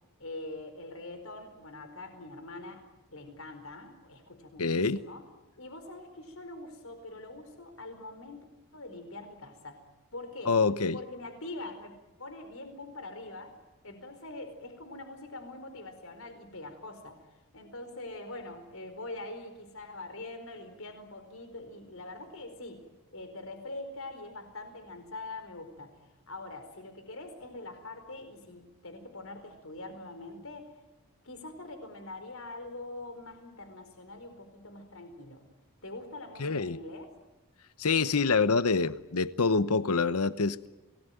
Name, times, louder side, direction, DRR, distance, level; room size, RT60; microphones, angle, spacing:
voice 1, 0.2-2.8 3.1-5.2 5.6-8.4 8.7-9.8 10.1-10.6 10.9-13.6 13.8-26.0 26.3-30.8 31.2-35.4 35.8-37.1, left 2 dB, 70° left, 8 dB, 4.5 m, -44 dB
voice 2, 4.6-5.0 10.5-11.0 36.4-36.8 37.8-40.7, left 4 dB, 90° left, 15 dB, 0.9 m, -26 dB
29.0 x 19.5 x 9.2 m, 1.1 s
head